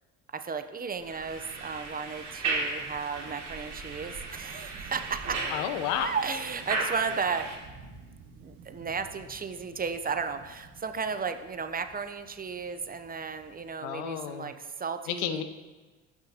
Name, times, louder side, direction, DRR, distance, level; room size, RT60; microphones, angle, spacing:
voice 1, 0.3-5.4 6.0-7.5 8.4-15.4, right 5 dB, 25° right, 9 dB, 0.6 m, -34 dB
sound 1, 1.0-7.6, right 3 dB, 45° right, 2.8 m, -35 dB
sound 2, 1.2-13.7, right 4 dB, 65° right, 1.6 m, -53 dB
voice 2, 5.5-6.1 13.8-14.5 15.1-15.4, left 10 dB, 75° left, 10 dB, 0.8 m, -31 dB
14.5 x 6.2 x 2.8 m, 1.3 s
hypercardioid pair, 70°, 37 cm